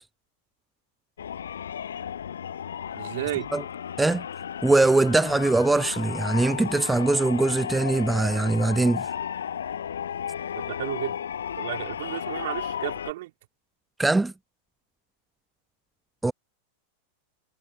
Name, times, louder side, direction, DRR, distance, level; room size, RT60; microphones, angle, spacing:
sound 1, 1.2-13.1, left 8 dB, 65° left, 5.9 m, -34 dB
voice 1, 2.9-3.5 10.5-11.2 11.6-13.3, right 17 dB, 55° right, 2.7 m, -33 dB
voice 2, 4.6-9.1 14.0-14.3 16.2-16.3, right 2 dB, 5° right, 0.9 m, -22 dB
figure-of-eight pair, 90°, 0 cm